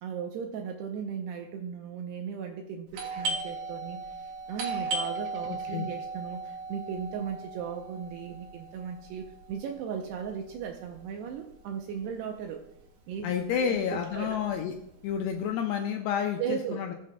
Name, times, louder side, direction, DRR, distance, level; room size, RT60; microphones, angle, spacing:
voice 1, 0.0-12.6 13.1-14.4 16.4-16.8, right 7 dB, 80° right, 4 dB, 2.4 m, -37 dB
Doorbell, 2.9-12.3 12.6-12.7 13.3-13.6 14.0-15.3, right 3 dB, 65° right, 2.4 m, -37 dB
voice 2, 13.2-14.7 15.0-16.9, left 8 dB, 85° left, 3 dB, 2.4 m, -30 dB
19.0 x 7.5 x 2.2 m, 0.81 s
omnidirectional pair, 5.3 m